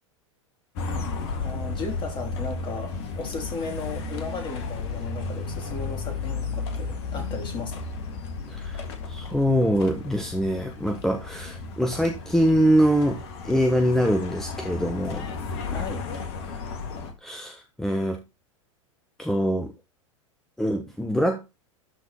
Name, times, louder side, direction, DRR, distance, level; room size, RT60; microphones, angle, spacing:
sound 1, 0.8-17.1, left 4 dB, 55° left, 1.9 m, -33 dB
voice 1, 1.4-7.8 15.7-16.0, left 3 dB, 30° left, 3.0 m, -35 dB
voice 2, 8.5-15.3 17.2-18.2 19.2-19.7 20.6-21.5, equal, ahead, 1.0 m, -24 dB
12.5 x 4.2 x 4.3 m
figure-of-eight pair, 90°, 17 cm